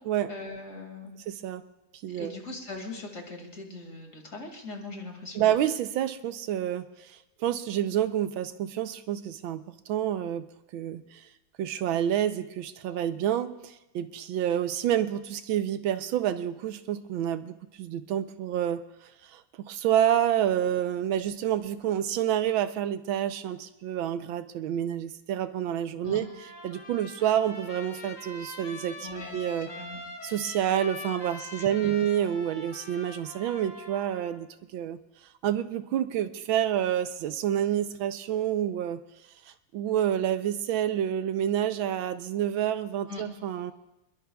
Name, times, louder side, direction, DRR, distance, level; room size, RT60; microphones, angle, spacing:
voice 1, 0.3-1.1 2.1-5.5 26.0-26.2 29.0-29.4 29.7-30.0 31.8-31.9 43.1-43.2, left 3 dB, 40° left, 2 dB, 2.7 m, -40 dB
voice 2, 1.3-1.6 2.0-2.4 5.3-7.1 7.4-10.5 10.7-11.2 11.6-18.8 19.3-19.4 19.7-26.3 26.6-29.7 30.2-35.0 35.4-39.0 39.7-43.7, right 10 dB, 80° right, 10 dB, 1.5 m, -28 dB
Trumpet, 26.2-34.4, left 2 dB, 60° left, 3.1 m, -43 dB
27.5 x 21.5 x 2.3 m, 0.94 s
omnidirectional pair, 2.2 m